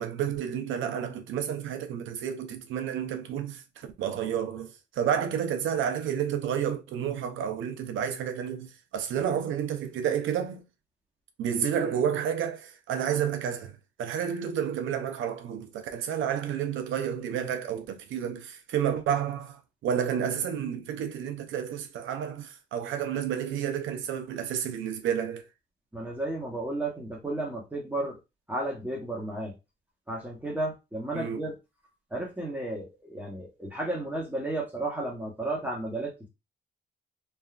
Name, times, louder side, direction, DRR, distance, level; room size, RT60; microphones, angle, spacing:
voice 1, 0.0-10.6 11.4-25.5 31.1-31.4, right 8 dB, 75° right, 0.6 m, -30 dB
voice 2, 25.9-28.2 28.5-29.5 30.1-31.5 32.1-36.3, right 2 dB, 10° right, 1.0 m, -33 dB
3.2 x 2.3 x 2.4 m
cardioid pair, 90°, 20 cm